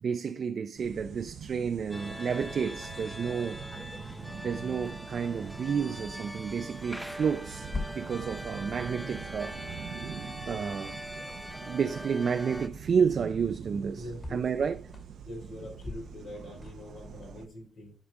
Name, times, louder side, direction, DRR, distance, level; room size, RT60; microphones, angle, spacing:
voice 1, 0.0-3.6 4.4-9.6 10.0-10.1 10.5-11.0 11.7-14.0 14.3-14.8, right 6 dB, 55° right, 0.5 m, -30 dB
sound 1, 0.8-17.5, right 7 dB, 80° right, 0.8 m, -44 dB
sound 2, 1.9-12.7, equal, ahead, 0.6 m, -42 dB
sound 3, 5.1-17.2, left 3 dB, 30° left, 2.5 m, -47 dB
voice 2, 13.9-14.4 15.2-17.9, left 1 dB, 75° left, 4.3 m, -43 dB
9.6 x 5.0 x 3.7 m
cardioid pair, 100°, 0 cm